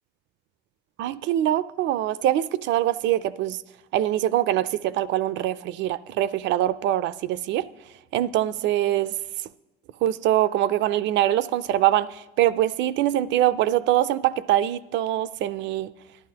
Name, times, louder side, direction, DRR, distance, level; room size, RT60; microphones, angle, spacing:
voice 1, 1.0-3.6 3.9-7.7 8.1-9.1 10.0-15.9, right 13 dB, 70° right, 0.4 m, -23 dB
12.0 x 11.0 x 2.8 m
cardioid pair, 115°, 20 cm